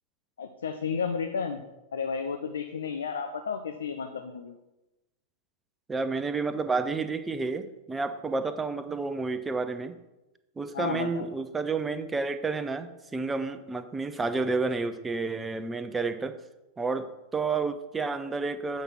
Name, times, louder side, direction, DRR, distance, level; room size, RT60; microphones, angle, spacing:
voice 1, 0.4-1.6 1.9-4.6 10.7-11.3, left 6 dB, 65° left, 6 dB, 0.6 m, -32 dB
voice 2, 5.9-10.0 10.6-16.4 16.8-18.8, right 4 dB, 15° right, 10 dB, 0.7 m, -30 dB
8.1 x 5.2 x 5.9 m, 0.97 s
figure-of-eight pair, 90°, 0 cm